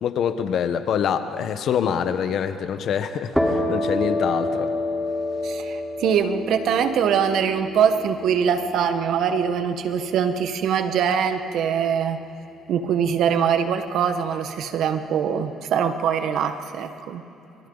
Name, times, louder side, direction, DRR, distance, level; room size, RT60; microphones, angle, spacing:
voice 1, 0.0-4.7, left 8 dB, 65° left, 10 dB, 1.2 m, -25 dB
sound 1, 3.3-10.8, left 1 dB, ahead, 3.9 m, -29 dB
voice 2, 5.4-12.2 12.7-17.2, right 7 dB, 70° right, 8 dB, 1.4 m, -23 dB
29.5 x 27.0 x 4.1 m, 3.0 s
supercardioid pair, 75°, 0 cm